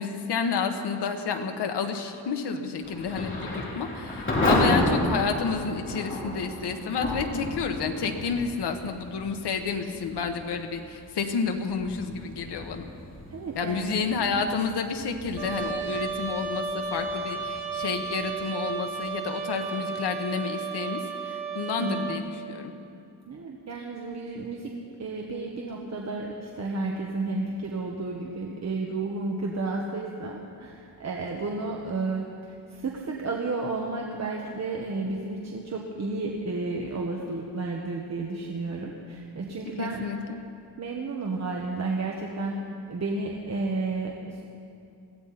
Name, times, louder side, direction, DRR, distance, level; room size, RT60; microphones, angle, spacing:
voice 1, 0.0-12.9 13.5-21.0 21.2-22.7 39.8-40.4, left 5 dB, 75° left, 5 dB, 1.4 m, -30 dB
Thunder / Rain, 2.8-19.5, left 1 dB, 30° left, 3.6 m, -32 dB
voice 2, 13.3-14.0 21.8-22.2 23.3-24.7 25.0-40.0 40.8-42.6 42.9-44.4, right 3 dB, 40° right, -1 dB, 1.4 m, -32 dB
Trumpet, 15.4-22.2, right 4 dB, 70° right, 1.7 m, -33 dB
22.0 x 15.5 x 4.2 m, 2.5 s
wide cardioid pair, 135°, 41 cm